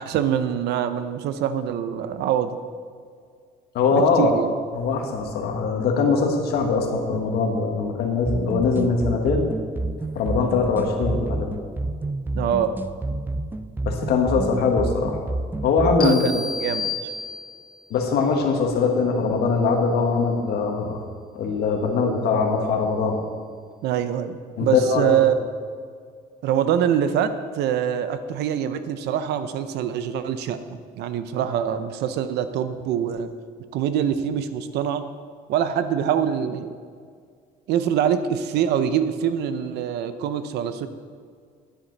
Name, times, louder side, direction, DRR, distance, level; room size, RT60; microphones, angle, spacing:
voice 1, 0.0-2.6 3.9-4.5 12.3-12.8 16.0-16.9 23.8-25.3 26.4-33.3 33.7-35.0 35.5-36.7 37.7-40.9, right 9 dB, 80° right, 11 dB, 0.7 m, -24 dB
voice 2, 3.7-4.3 4.7-9.5 10.1-11.6 13.9-15.2 15.6-16.5 17.9-21.0 21.3-23.2 24.6-25.1, left 4 dB, 75° left, 2 dB, 1.7 m, -22 dB
sound 1, 8.3-16.3, right 2 dB, 10° right, 0.5 m, -29 dB
sound 2, 16.0-17.8, left 5 dB, 30° left, 1.1 m, -31 dB
10.5 x 10.0 x 4.1 m, 2.1 s
cardioid pair, 110°, 17 cm